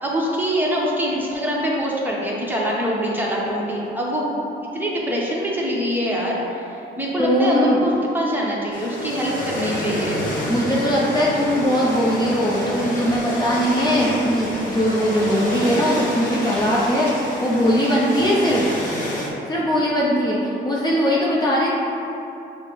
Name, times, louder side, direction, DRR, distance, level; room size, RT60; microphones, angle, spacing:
voice 1, 0.0-4.4 4.7-10.2, equal, 10° right, -5 dB, 0.9 m, -24 dB
voice 2, 7.2-7.8 10.4-18.7 19.5-21.7, equal, 20° left, -6 dB, 0.6 m, -20 dB
sound 1, 8.7-19.3, equal, 40° left, 1.1 m, -28 dB
6.1 x 2.0 x 3.4 m, 2.9 s
cardioid pair, 90°, 20 cm